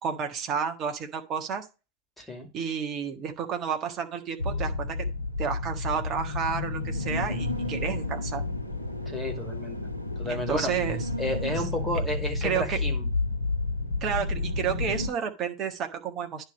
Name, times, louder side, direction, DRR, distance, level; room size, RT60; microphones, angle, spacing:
voice 1, 0.0-1.7 2.5-5.1 5.4-8.4 10.3-11.0 12.4-12.8 14.0-16.4, right 7 dB, 30° right, 5 dB, 1.6 m, -31 dB
voice 2, 2.2-2.5 9.1-9.8 10.2-10.7 11.2-13.1, left 1 dB, ahead, 2 dB, 2.6 m, -32 dB
sound 1, 4.4-15.1, left 2 dB, 85° left, 1.6 m, -31 dB
10.0 x 3.4 x 6.3 m, 0.29 s
figure-of-eight pair, 90°, 0 cm